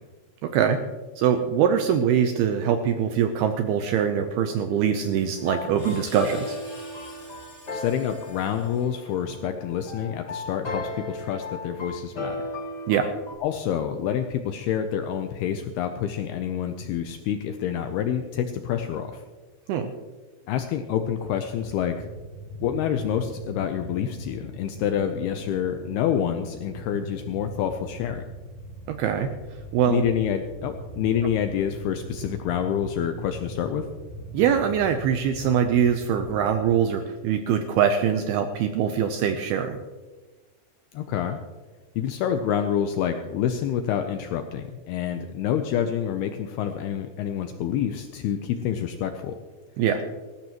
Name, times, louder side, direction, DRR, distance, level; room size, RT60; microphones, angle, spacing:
voice 1, 0.4-0.8 1.2-6.6 12.9-13.1 19.7-19.9 28.9-29.3 29.7-30.0 34.3-39.8 49.8-50.0, right 8 dB, 85° right, 6 dB, 2.3 m, -23 dB
Screech, 5.0-9.3, left 1 dB, 10° left, 4.4 m, -47 dB
sound 1, 5.3-13.3, left 2 dB, 60° left, 1.0 m, -36 dB
voice 2, 7.7-12.4 13.4-19.2 20.5-22.0 22.6-28.2 29.9-33.8 40.9-41.4 42.0-49.3, left 9 dB, 90° left, 6 dB, 2.3 m, -27 dB
sound 2, 21.3-36.7, right 1 dB, 25° left, 1.5 m, -41 dB
19.5 x 15.0 x 3.0 m, 1.3 s
omnidirectional pair, 5.3 m